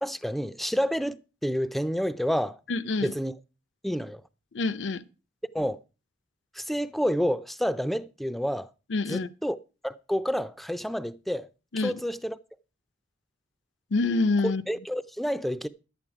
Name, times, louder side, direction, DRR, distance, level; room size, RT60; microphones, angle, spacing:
voice 1, 0.0-2.6 3.0-3.3 3.8-4.2 5.5-5.8 6.6-8.7 9.1-9.6 9.8-11.5 11.8-12.4 14.4-15.7, equal, ahead, 0.4 m, -29 dB
voice 2, 2.7-3.1 4.5-5.0 8.9-9.3 11.7-11.9 13.9-14.6, left 3 dB, 70° left, 0.7 m, -26 dB
11.5 x 9.0 x 4.8 m
head